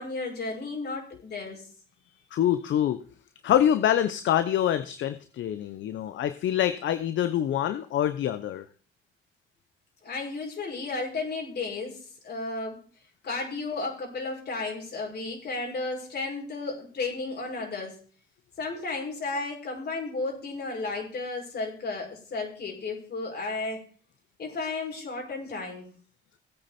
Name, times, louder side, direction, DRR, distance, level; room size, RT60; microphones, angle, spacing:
voice 1, 0.0-1.6 10.0-12.8 13.2-18.0 18.6-23.8 24.4-25.9, left 3 dB, 55° left, 0 dB, 6.4 m, -33 dB
voice 2, 2.3-3.0 3.4-8.6, left 10 dB, 70° left, 12 dB, 0.9 m, -25 dB
17.0 x 9.0 x 4.4 m, 0.41 s
cardioid pair, 90°, 20 cm